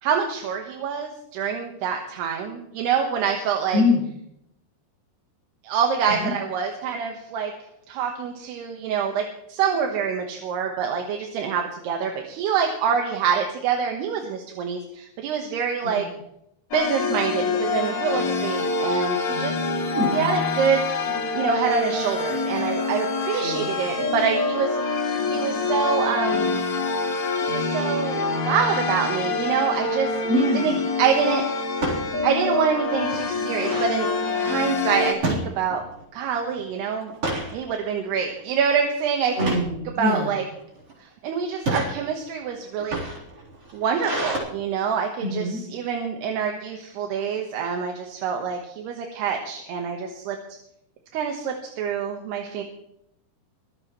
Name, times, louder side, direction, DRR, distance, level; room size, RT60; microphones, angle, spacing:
voice 1, 0.0-3.8 5.6-7.5 7.9-16.0 16.7-19.7 20.1-20.8 21.3-24.8 25.3-26.6 27.4-30.2 30.6-30.7 31.0-31.4 32.2-34.1 34.4-35.8 36.1-37.1 37.5-39.5 40.0-40.4 41.0-43.0 43.7-45.4 45.7-50.4 51.1-52.6, right 7 dB, 80° right, 2 dB, 3.4 m, -26 dB
voice 2, 3.7-4.1 6.1-6.3 15.8-16.1 19.9-20.1 23.4-23.7 30.3-30.8 39.4-40.3 45.2-45.6, left 2 dB, 60° right, -2 dB, 6.2 m, -24 dB
sound 1, 16.7-35.1, left 4 dB, 45° left, 3.4 m, -26 dB
sound 2, 30.0-30.3 31.7-32.0 32.5-32.6 32.9-33.9 35.2-36.0 36.4-36.6 37.0-37.5 38.1-38.4 39.3-39.7 40.5-40.9 41.5-41.9 42.7-44.4, right 2 dB, 35° right, 4.5 m, -29 dB
24.0 x 14.0 x 3.1 m, 0.78 s
omnidirectional pair, 4.6 m